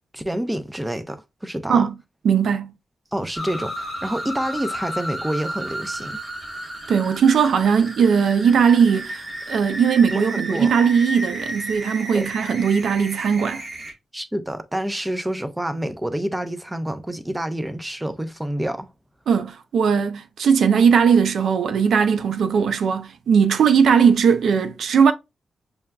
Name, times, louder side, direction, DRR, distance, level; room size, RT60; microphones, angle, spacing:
voice 1, 0.1-1.8 3.1-6.2 10.1-10.2 10.5-10.7 12.1-12.3 14.1-18.9, right 1 dB, 10° right, 0.5 m, -28 dB
voice 2, 2.2-2.7 6.9-9.2 9.5-13.6 19.3-25.1, right 6 dB, 80° right, 0.4 m, -18 dB
sound 1, 3.4-13.9, right 1 dB, 30° right, 1.4 m, -33 dB
6.6 x 2.3 x 2.2 m
cardioid pair, 80°, 0 cm